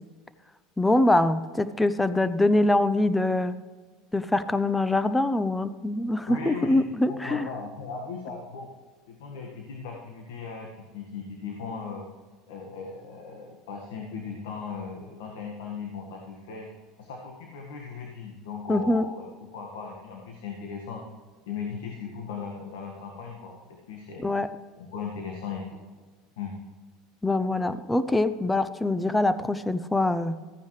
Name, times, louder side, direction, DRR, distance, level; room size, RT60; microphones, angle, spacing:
voice 1, 0.8-3.5 4.1-7.5 18.7-19.1 24.2-24.5 27.2-30.4, left 2 dB, 10° left, 13 dB, 0.7 m, -24 dB
voice 2, 6.3-6.8 7.1-8.7 9.1-12.1 12.5-16.7 17.0-21.0 21.5-24.3 24.8-25.8 26.4-26.6, left 5 dB, 80° left, 0 dB, 1.7 m, -38 dB
14.5 x 9.4 x 3.3 m, 1.4 s
hypercardioid pair, 95°, 0 cm